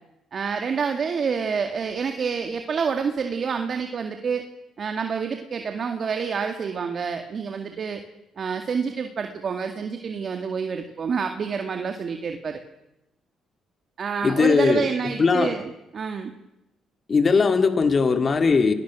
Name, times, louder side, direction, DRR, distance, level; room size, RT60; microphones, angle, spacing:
voice 1, 0.3-4.4 4.8-8.0 8.4-12.6 14.0-16.3, right 6 dB, 50° right, 6 dB, 2.1 m, -28 dB
voice 2, 14.2-15.5 17.1-18.7, left 4 dB, 40° left, 8 dB, 2.1 m, -20 dB
29.0 x 20.0 x 6.3 m, 0.91 s
cardioid pair, 90°, 0 cm